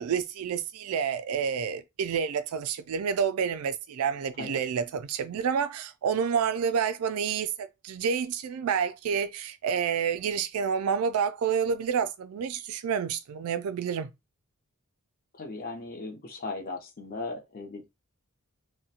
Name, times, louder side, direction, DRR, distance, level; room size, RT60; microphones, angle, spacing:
voice 1, 0.0-14.1, right 7 dB, 80° right, 0.4 m, -29 dB
voice 2, 15.3-17.9, left 3 dB, 40° left, 0.6 m, -37 dB
2.4 x 2.1 x 2.7 m
head